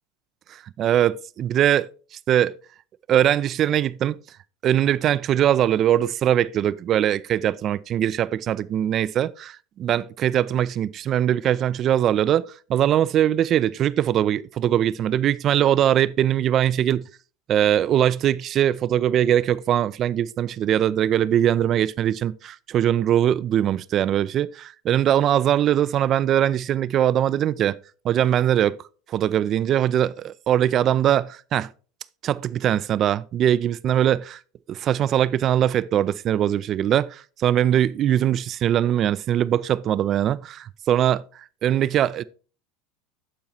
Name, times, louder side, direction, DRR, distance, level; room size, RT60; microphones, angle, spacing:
voice 1, 0.8-1.9 2.3-2.5 3.1-4.2 4.6-17.0 17.5-27.8 28.0-28.8 29.1-30.1 30.5-31.7 32.2-34.4 34.7-41.2 41.6-42.2, right 11 dB, 40° right, 0.4 m, -21 dB
14.0 x 4.7 x 2.7 m
figure-of-eight pair, 80°, 0 cm